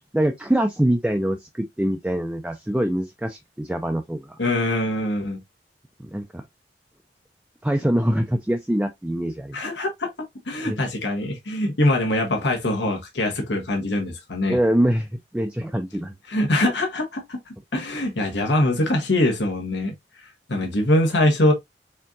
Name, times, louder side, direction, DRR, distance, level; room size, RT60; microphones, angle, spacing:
voice 1, 0.1-4.4 6.0-6.4 7.6-9.6 10.6-10.8 14.5-16.1, right 1 dB, 5° right, 0.4 m, -24 dB
voice 2, 4.4-5.4 9.5-10.1 10.5-14.6 16.3-19.9 20.2-21.5, left 1 dB, 75° left, 1.2 m, -23 dB
4.4 x 3.6 x 2.6 m
head